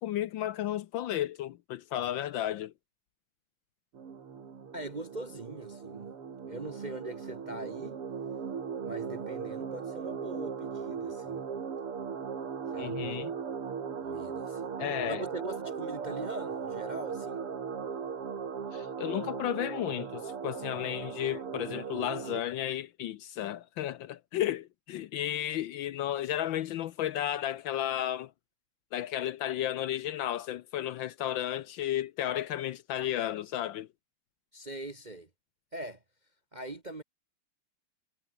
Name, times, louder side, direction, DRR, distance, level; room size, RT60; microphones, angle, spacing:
voice 1, 0.0-2.7 12.8-13.3 14.8-15.2 18.7-28.3 28.9-33.9, left 12 dB, 70° left, 1.3 m, -33 dB
sound 1, 3.9-22.4, right 6 dB, 85° right, 3.5 m, -38 dB
voice 2, 4.7-6.1 6.5-8.0 8.8-11.4 12.7-13.3 14.0-14.7 15.1-17.4 34.5-35.3 35.7-36.0 36.5-37.0, right 2 dB, 30° right, 0.9 m, -42 dB
omnidirectional pair, 2.4 m